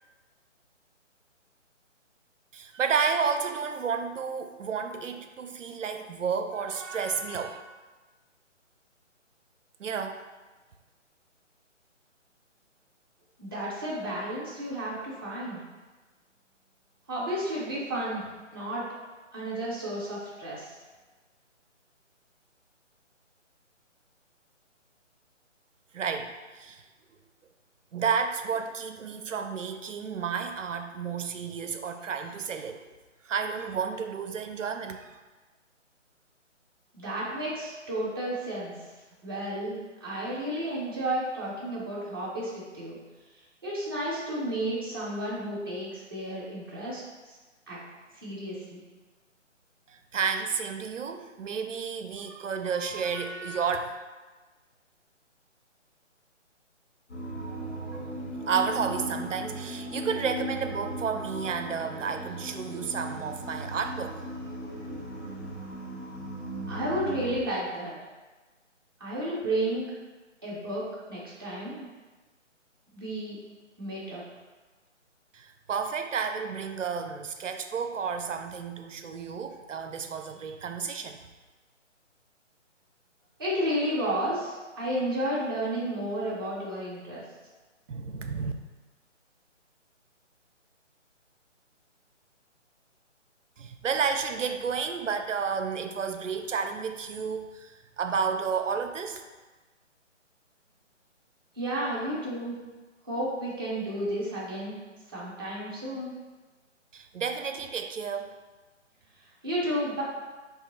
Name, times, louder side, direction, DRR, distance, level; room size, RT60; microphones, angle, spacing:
voice 1, 2.5-7.6 9.8-10.2 25.9-26.8 27.9-32.8 33.2-35.1 49.9-54.0 58.5-64.3 75.3-81.2 87.9-88.5 93.6-99.2 106.9-108.3, right 6 dB, 80° right, 7 dB, 0.5 m, -31 dB
voice 2, 13.4-15.6 17.1-18.2 18.5-18.8 19.3-20.7 36.9-38.7 39.2-43.0 43.6-47.4 47.7-47.8 48.2-48.8 66.7-67.9 69.0-69.9 70.4-71.9 72.9-73.4 73.8-74.2 83.4-87.2 101.6-102.5 103.1-104.8 105.1-106.1 109.4-110.0, right 1 dB, 20° right, -7 dB, 0.6 m, -32 dB
sound 1, 57.1-67.4, equal, 65° left, 1.3 m, -37 dB
3.1 x 2.7 x 3.8 m, 1.3 s
figure-of-eight pair, 145°, 38 cm